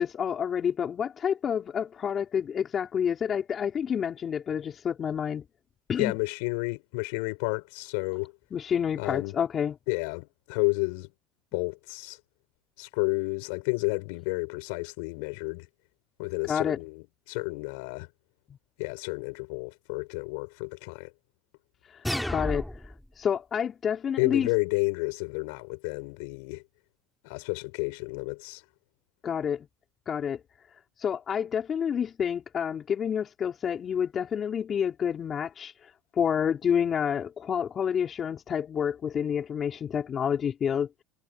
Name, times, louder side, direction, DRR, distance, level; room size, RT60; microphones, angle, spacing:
voice 1, 0.0-5.4 5.9-6.2 8.5-9.7 16.5-16.8 21.9-22.7 23.2-24.5 29.2-29.7 30.1-30.4 31.0-40.9, left 8 dB, 35° left, 4.8 m, -29 dB
voice 2, 6.0-8.3 9.0-9.3 9.9-11.1 11.5-12.2 12.8-15.7 16.2-18.1 18.8-21.1 24.2-26.6 27.2-28.6, left 32 dB, 75° left, 7.7 m, -31 dB
sound 1, 22.0-23.0, left 1 dB, 5° left, 6.1 m, -31 dB
supercardioid pair, 105°, 0 cm